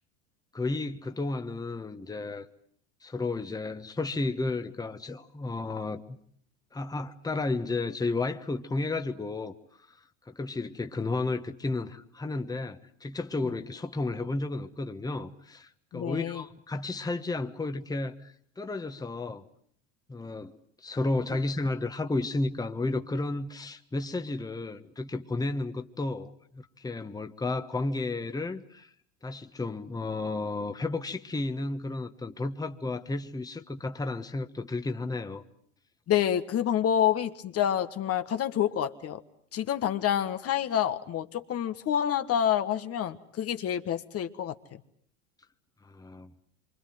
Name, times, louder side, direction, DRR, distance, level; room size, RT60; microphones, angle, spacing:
voice 1, 0.5-2.5 3.0-6.2 6.7-9.5 9.9-10.0 10.3-19.4 20.1-20.5 20.8-28.9 29.2-35.4 45.8-46.3, left 2 dB, 10° left, 1.5 m, -32 dB
voice 2, 15.9-16.4 36.1-39.2 39.5-44.5, left 10 dB, 40° left, 1.6 m, -28 dB
26.5 x 25.5 x 7.8 m
hypercardioid pair, 90°, 35 cm